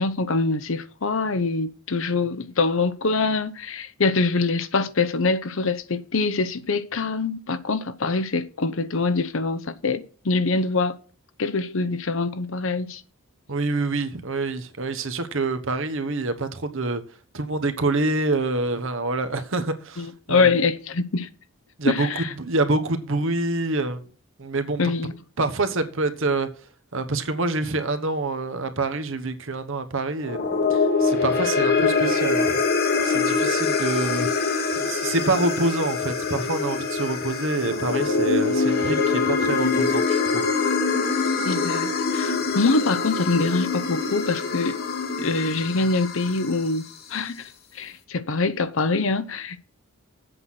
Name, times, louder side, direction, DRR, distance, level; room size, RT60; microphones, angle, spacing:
voice 1, 0.0-11.0 11.4-13.0 20.0-21.3 21.8-22.3 24.8-25.1 41.4-44.8 45.2-46.8 47.1-47.5 47.7-49.6, left 3 dB, 65° left, 0.8 m, -24 dB
voice 2, 13.5-17.0 17.3-20.5 21.8-24.0 24.4-24.8 25.4-26.5 26.9-30.4 30.7-32.6 33.0-34.3 34.8-40.5, right 3 dB, 60° right, 1.1 m, -26 dB
sound 1, 30.2-46.7, left 4 dB, 45° left, 1.3 m, -24 dB
8.0 x 5.8 x 6.4 m
head